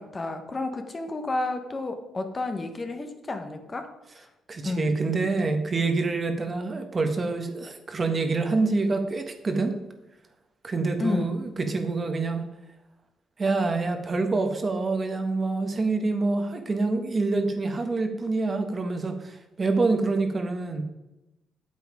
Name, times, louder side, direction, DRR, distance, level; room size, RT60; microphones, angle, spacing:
voice 1, 0.0-3.9 4.6-5.0 11.0-11.4, left 2 dB, 30° left, 6 dB, 1.2 m, -31 dB
voice 2, 4.5-9.8 10.6-12.5 13.4-20.8, right 3 dB, 35° right, 6 dB, 1.3 m, -26 dB
8.5 x 8.0 x 5.0 m, 0.96 s
cardioid pair, 90°, 0 cm